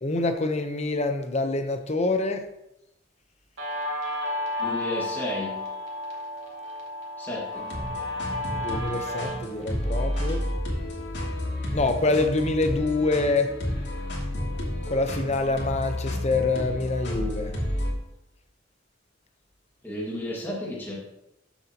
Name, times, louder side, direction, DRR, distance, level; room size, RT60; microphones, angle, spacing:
voice 1, 0.0-2.4 8.6-10.4 11.7-13.5 14.9-17.5, left 3 dB, 35° left, 7 dB, 0.9 m, -26 dB
Guitar, 3.6-10.6, left 2 dB, 85° right, 2.4 m, -33 dB
voice 2, 4.6-5.6 7.2-7.7 19.8-21.0, left 1 dB, 10° left, -5 dB, 1.9 m, -32 dB
sound 1, 7.5-17.9, left 1 dB, 60° left, 2.6 m, -31 dB
13.0 x 7.3 x 2.9 m, 0.88 s
head